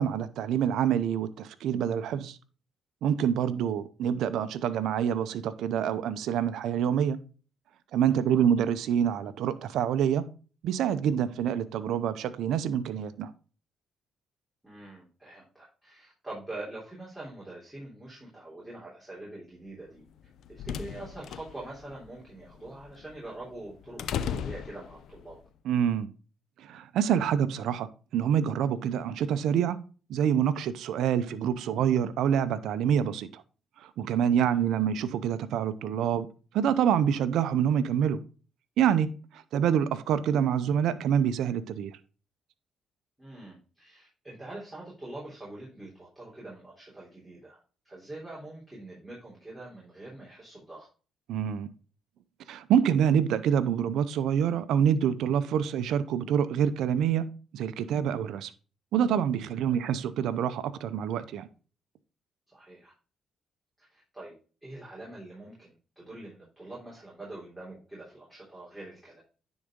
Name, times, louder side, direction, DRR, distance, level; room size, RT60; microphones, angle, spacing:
voice 1, 0.0-2.4 3.0-7.2 7.9-10.3 10.6-13.3 25.6-26.1 26.6-29.8 30.1-33.4 33.8-36.3 36.5-38.2 38.8-39.1 39.5-41.9 51.3-51.7 52.5-57.2 57.5-58.5 58.9-61.5, right 8 dB, 80° right, 0.6 m, -26 dB
voice 2, 14.6-20.0 20.5-25.4 34.4-34.6 43.2-47.6 47.8-50.9 59.6-59.8 62.5-62.9 63.8-64.3 64.6-69.2, right 2 dB, 10° right, 3.3 m, -44 dB
sound 1, 20.1-25.4, left 8 dB, 75° left, 0.5 m, -37 dB
9.9 x 4.0 x 3.6 m
cardioid pair, 90°, 0 cm